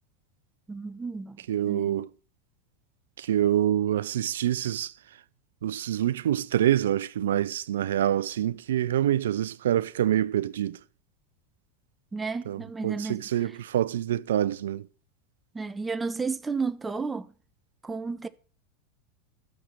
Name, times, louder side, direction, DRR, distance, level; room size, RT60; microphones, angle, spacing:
voice 1, 0.7-1.4 1.6-2.0 12.1-13.6 15.5-17.3 17.8-18.3, right 4 dB, 15° right, 0.8 m, -32 dB
voice 2, 1.5-2.1 3.3-4.9 5.6-10.8 12.5-14.8, right 11 dB, 75° right, 0.5 m, -26 dB
12.5 x 6.5 x 7.6 m
hypercardioid pair, 90°, 0 cm